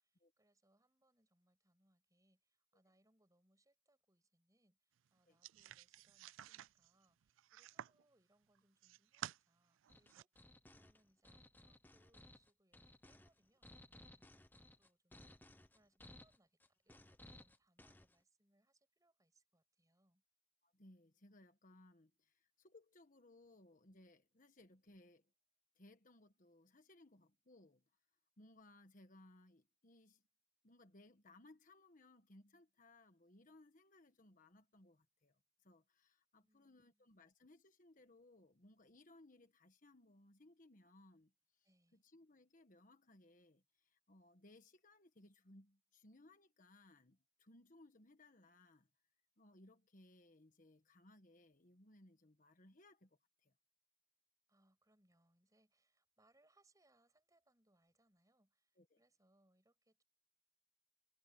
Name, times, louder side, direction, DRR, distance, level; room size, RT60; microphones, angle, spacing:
voice 1, 0.0-20.2 36.4-37.1 41.6-42.0 54.5-60.0, right 1 dB, 20° right, 7.5 m, -78 dB
sound 1, 5.4-8.0 8.5-9.4 9.8-10.2, right 11 dB, 85° right, 0.4 m, -52 dB
sound 2, 9.9-18.2, left 1 dB, 10° left, 0.9 m, -61 dB
voice 2, 20.6-25.3 25.7-27.8 28.4-30.2 30.6-41.7 41.9-48.9 49.4-53.5 58.8-59.0, left 2 dB, 45° left, 1.4 m, -65 dB
head